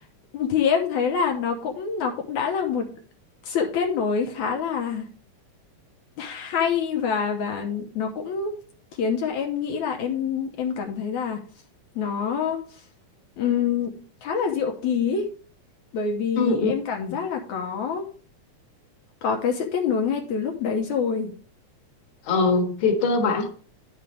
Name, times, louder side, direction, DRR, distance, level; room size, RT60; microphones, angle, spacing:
voice 1, 0.3-2.9 3.4-5.1 6.2-8.6 9.0-11.4 12.0-12.8 13.4-13.9 14.2-15.3 15.9-18.0 19.2-21.3, left 6 dB, 75° left, 2 dB, 2.2 m, -26 dB
voice 2, 16.4-16.7 17.0-17.1 22.3-23.5, left 3 dB, 50° left, 2 dB, 2.0 m, -22 dB
10.5 x 6.0 x 3.3 m, 0.42 s
omnidirectional pair, 3.5 m